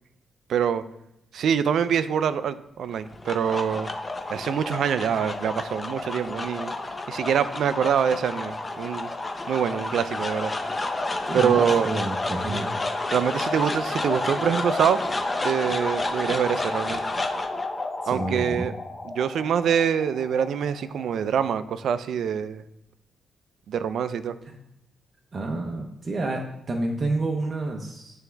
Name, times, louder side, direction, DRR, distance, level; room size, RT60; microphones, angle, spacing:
voice 1, 0.5-0.8 1.3-3.9 4.3-6.7 7.1-9.1 9.5-10.5 11.3-11.9 13.1-15.0 15.4-17.0 18.1-18.7 19.0-22.6 23.7-24.4, right 8 dB, 65° right, 13 dB, 0.3 m, -25 dB
sound 1, 2.9-21.3, left 2 dB, 20° left, 0.5 m, -30 dB
voice 2, 11.3-12.7 18.0-18.7 24.5-24.6 25.3-28.2, right 2 dB, 30° right, 1 dB, 0.6 m, -29 dB
9.0 x 3.5 x 3.4 m, 0.84 s
wide cardioid pair, 150°, 0 cm